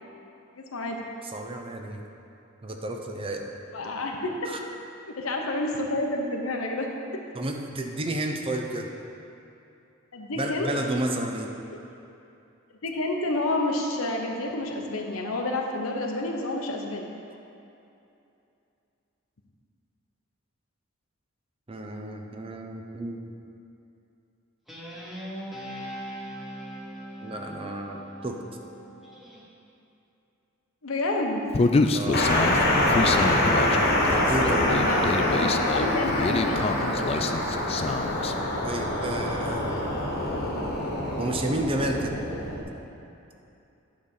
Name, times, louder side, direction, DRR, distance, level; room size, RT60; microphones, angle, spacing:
voice 1, 0.6-1.0 3.7-4.6 5.2-6.9 10.1-10.7 11.7-11.8 12.8-17.1 30.8-31.4 34.7-37.1, left 2 dB, 85° left, 2 dB, 1.0 m, -29 dB
voice 2, 1.2-2.0 2.6-3.5 4.5-4.6 7.3-8.9 10.4-11.5 21.7-23.2 27.2-28.4 31.9-32.3 34.1-34.7 38.6-39.8 41.2-42.2, right 1 dB, 25° right, 3 dB, 0.6 m, -31 dB
Guitar, 24.7-29.4, equal, ahead, 1.3 m, -40 dB
Human voice, 31.5-38.3, left 3 dB, 30° left, 0.3 m, -27 dB
sound 1, 32.1-42.6, left 1 dB, 50° left, 1.3 m, -25 dB
10.0 x 4.1 x 6.5 m, 2.7 s
head